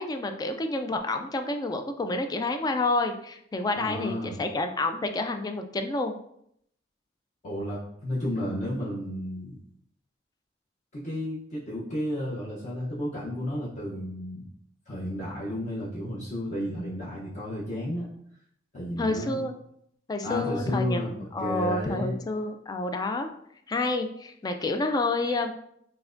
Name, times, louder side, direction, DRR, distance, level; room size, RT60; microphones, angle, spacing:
voice 1, 0.0-6.2 19.0-19.5 20.1-23.3 23.7-25.5, left 2 dB, 20° left, 6 dB, 0.3 m, -29 dB
voice 2, 3.7-4.4 7.4-9.6 10.9-14.5 14.9-18.1 18.7-19.4 20.2-22.2, equal, 40° left, -8 dB, 0.7 m, -32 dB
5.6 x 2.1 x 2.5 m, 0.71 s
head